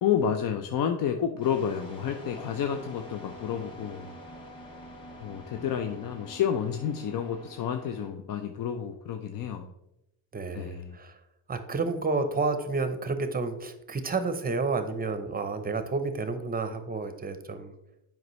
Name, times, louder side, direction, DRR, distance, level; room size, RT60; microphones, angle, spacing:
voice 1, 0.0-4.1 5.2-9.7 10.5-11.0, left 8 dB, 50° left, 6 dB, 0.6 m, -30 dB
sound 1, 1.4-8.1, equal, 10° left, 1.8 m, -46 dB
voice 2, 10.3-11.1 11.5-17.7, right 3 dB, 20° right, 9 dB, 0.7 m, -30 dB
8.0 x 5.2 x 3.1 m, 0.87 s
cardioid pair, 115°, 44 cm